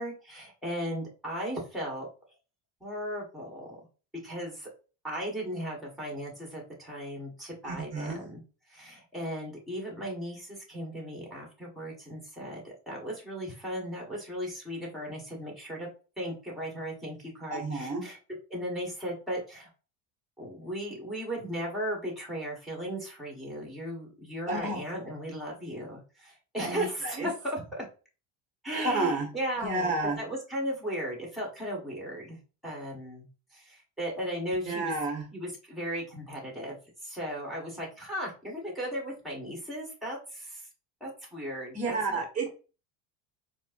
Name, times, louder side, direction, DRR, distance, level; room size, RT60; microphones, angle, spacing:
voice 1, 0.0-2.1 2.8-3.9 4.2-4.7 5.0-8.4 8.7-15.9 16.2-18.2 18.5-19.7 20.4-27.9 28.6-34.9 35.3-40.7 41.0-42.5, equal, ahead, -1 dB, 1.4 m, -36 dB
voice 2, 7.6-8.2 17.5-18.0 24.5-24.8 26.6-27.3 28.7-29.3 29.6-30.2 34.7-35.2 41.7-42.5, right 3 dB, 20° right, 0 dB, 1.0 m, -31 dB
4.3 x 2.1 x 2.5 m, 0.34 s
supercardioid pair, 110°, 36 cm